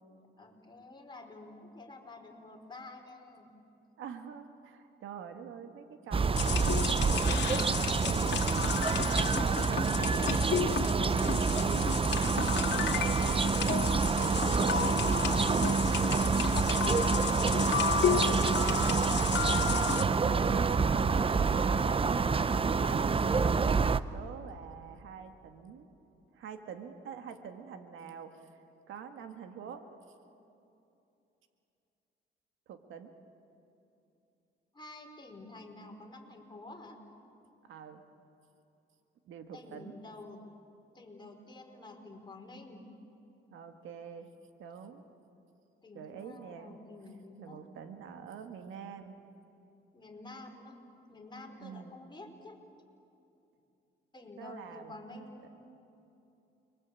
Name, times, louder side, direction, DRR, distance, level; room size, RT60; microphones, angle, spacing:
voice 1, 0.4-3.6 11.0-13.3 14.4-17.1 34.7-37.0 39.5-40.4 40.9-42.8 45.8-47.6 49.9-50.8 51.1-52.6 54.1-55.5, left 2 dB, 20° left, 2 dB, 4.6 m, -49 dB
voice 2, 4.0-8.4 9.1-10.4 13.0-13.4 13.7-15.4 18.0-23.6 23.8-25.9 26.3-28.5 28.9-29.8 32.7-33.1 37.6-38.0 39.3-40.0 43.5-44.3 44.6-45.0 45.9-46.8 47.4-49.1 51.6-52.0 54.4-55.3, right 7 dB, 80° right, 7 dB, 1.9 m, -46 dB
sound 1, 6.1-24.0, right 5 dB, 30° right, 0.7 m, -27 dB
sound 2, 6.4-20.0, left 8 dB, 60° left, 2.1 m, -33 dB
29.5 x 23.0 x 8.4 m, 2.8 s
cardioid pair, 90°, 20 cm